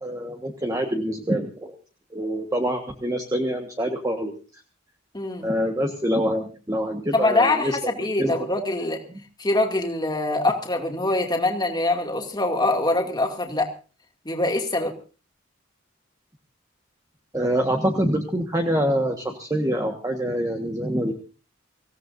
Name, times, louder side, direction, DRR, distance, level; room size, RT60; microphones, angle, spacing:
voice 1, 0.0-1.8 2.1-4.3 5.4-7.9 8.2-8.3 9.1-9.2 17.3-21.1, equal, 20° right, 3 dB, 1.5 m, -25 dB
voice 2, 5.1-5.5 7.1-9.0 9.4-13.7 14.2-14.9, left 2 dB, 20° left, 2 dB, 2.5 m, -24 dB
25.5 x 16.5 x 2.7 m, 0.35 s
head